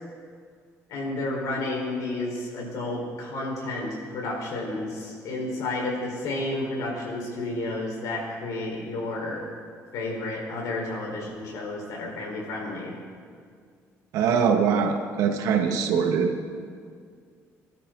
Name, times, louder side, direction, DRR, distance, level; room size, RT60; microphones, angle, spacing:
voice 1, 0.9-9.4 9.9-12.9, left 2 dB, 80° left, -2 dB, 4.7 m, -31 dB
voice 2, 14.1-16.3, right 6 dB, 90° right, 4 dB, 1.6 m, -22 dB
25.0 x 12.5 x 4.0 m, 2.1 s
cardioid pair, 175°, 6 cm